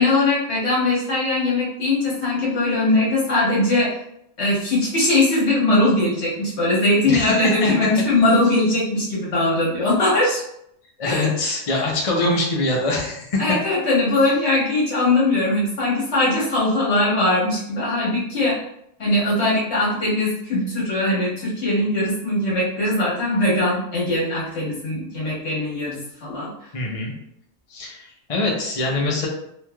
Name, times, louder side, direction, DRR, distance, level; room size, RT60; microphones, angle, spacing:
voice 1, 0.0-4.0 4.4-10.4 11.0-11.3 13.4-18.6 19.0-26.5, left 2 dB, 60° left, -6 dB, 1.4 m, -20 dB
voice 2, 7.0-7.7 11.0-13.4 26.7-27.1 27.7-29.3, left 2 dB, 40° left, -2 dB, 0.5 m, -23 dB
3.2 x 2.8 x 2.2 m, 0.74 s
omnidirectional pair, 1.3 m